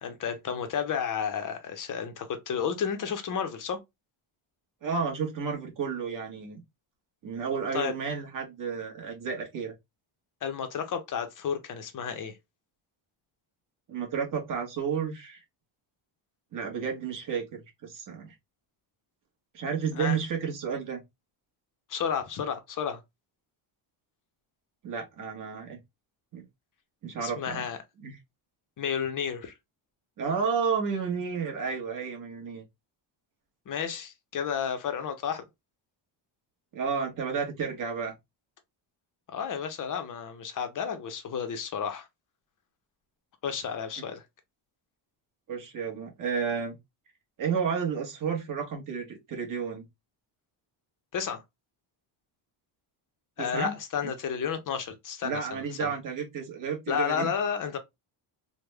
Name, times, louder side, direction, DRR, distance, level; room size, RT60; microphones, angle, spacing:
voice 1, 0.0-3.8 7.7-7.9 10.4-12.4 19.9-20.2 21.9-23.0 27.2-27.8 28.8-29.5 33.7-35.4 39.3-42.1 43.4-44.2 51.1-51.4 53.4-55.9 56.9-57.8, left 7 dB, 40° left, 0.6 m, -32 dB
voice 2, 4.8-6.6 7.2-9.7 13.9-15.4 16.5-18.3 19.5-21.0 24.8-25.8 26.3-26.4 27.0-27.6 28.0-28.2 30.2-32.6 36.7-38.1 45.5-46.7 47.4-49.8 53.4-53.7 54.0-54.1 55.2-57.3, right 6 dB, 40° right, 1.2 m, -31 dB
3.4 x 2.2 x 3.2 m
cardioid pair, 150°, 49 cm